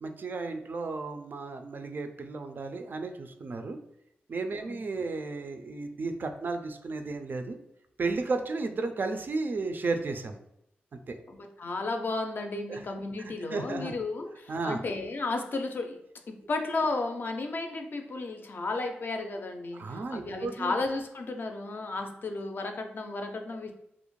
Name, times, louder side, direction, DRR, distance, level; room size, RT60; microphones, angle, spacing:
voice 1, 0.0-3.8 4.3-7.6 8.0-10.4 11.1-11.2 12.7-12.8 13.2-13.9 14.5-14.8 19.7-20.7, right 3 dB, 50° right, 7 dB, 0.3 m, -33 dB
voice 2, 11.3-16.0 16.3-23.7, left 3 dB, 55° left, 4 dB, 0.4 m, -33 dB
2.4 x 2.1 x 3.0 m, 0.76 s
cardioid pair, 60°, 4 cm